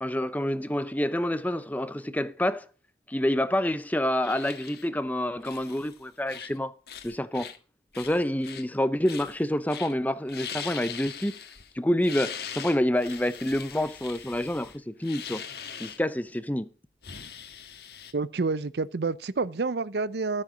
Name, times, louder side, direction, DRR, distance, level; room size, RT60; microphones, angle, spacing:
voice 1, 0.0-2.7 3.1-6.7 7.0-7.5 8.0-11.4 11.8-15.4 15.8-16.7, left 1 dB, 10° left, 0.6 m, -28 dB
sound 1, 4.2-4.9 5.4-5.9 6.3-6.6 6.9-7.6 7.9-8.6 9.1-9.4 9.7-9.9 10.3-11.7 12.0-16.0 17.0-18.1, left 8 dB, 60° left, 1.5 m, -41 dB
voice 2, 18.1-20.4, right 4 dB, 65° right, 0.6 m, -28 dB
14.5 x 7.6 x 5.2 m
head